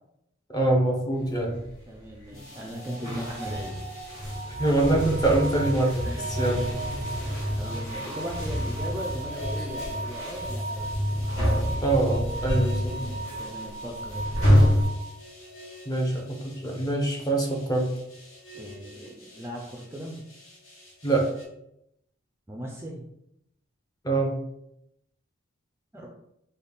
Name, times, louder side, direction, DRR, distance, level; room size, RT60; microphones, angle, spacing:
voice 1, 0.5-1.6 4.6-6.7 11.8-12.9 15.9-17.9 21.0-21.3 24.0-24.4, right 2 dB, 20° left, 0 dB, 0.7 m, -24 dB
sound 1, 1.1-2.6 2.9-14.9, equal, 35° left, 1.4 m, -28 dB
voice 2, 1.9-3.8 6.0-6.3 7.1-10.9 13.4-14.9 18.5-20.2 22.5-23.0 25.9-26.1, equal, 15° right, 0 dB, 0.4 m, -38 dB
sound 2, 2.3-21.4, equal, 85° left, 1.1 m, -45 dB
sound 3, 4.3-15.1, right 2 dB, 55° left, 0.4 m, -38 dB
4.0 x 2.2 x 3.4 m, 0.80 s
head